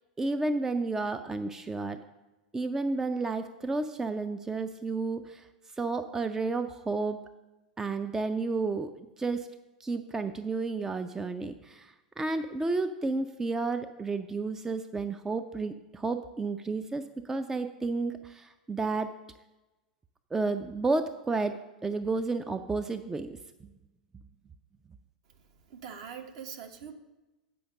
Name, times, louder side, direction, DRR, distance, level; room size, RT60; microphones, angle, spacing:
voice 1, 0.2-2.0 2.5-5.5 5.8-7.2 7.8-9.5 9.8-19.1 20.3-21.5 21.8-23.7, right 3 dB, 10° right, 9 dB, 0.4 m, -31 dB
voice 2, 25.7-26.9, right 7 dB, 55° right, 5 dB, 1.0 m, -42 dB
8.5 x 5.6 x 6.4 m, 1.1 s
figure-of-eight pair, 85°, 4 cm